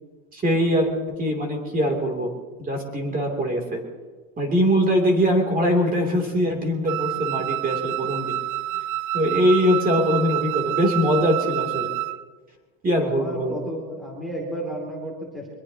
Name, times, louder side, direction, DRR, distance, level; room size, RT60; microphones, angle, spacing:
voice 1, 0.3-0.9 1.2-2.3 2.6-3.8 4.4-8.4 9.1-11.9 12.8-13.5, equal, 20° right, 2 dB, 3.0 m, -22 dB
Wind instrument woodwind instrument, 6.9-12.2, right 16 dB, 90° right, 0.7 m, -28 dB
voice 2, 13.0-15.5, right 1 dB, ahead, -2 dB, 2.6 m, -33 dB
23.5 x 21.0 x 2.9 m, 1.4 s
supercardioid pair, 145°, 43 cm